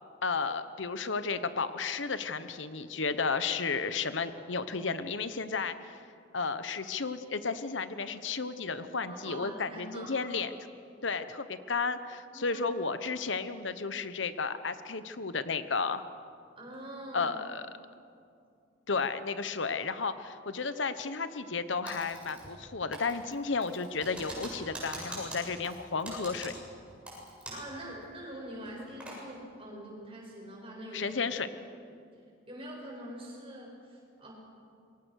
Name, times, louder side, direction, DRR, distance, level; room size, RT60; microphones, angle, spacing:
voice 1, 0.2-6.0 6.3-10.5 11.0-16.0 17.1-17.6 18.9-26.5 30.9-31.5, left 4 dB, 75° left, 11 dB, 1.1 m, -33 dB
voice 2, 9.1-10.2 12.3-12.6 16.6-17.4 27.5-31.2 31.9-32.0 32.5-34.3, right 1 dB, 30° right, -2 dB, 7.2 m, -44 dB
Typing, 21.9-22.7 22.9-27.7 28.0-28.1 28.6-29.2, right 1 dB, 5° right, 7.6 m, -43 dB
27.5 x 23.0 x 6.5 m, 2.4 s
head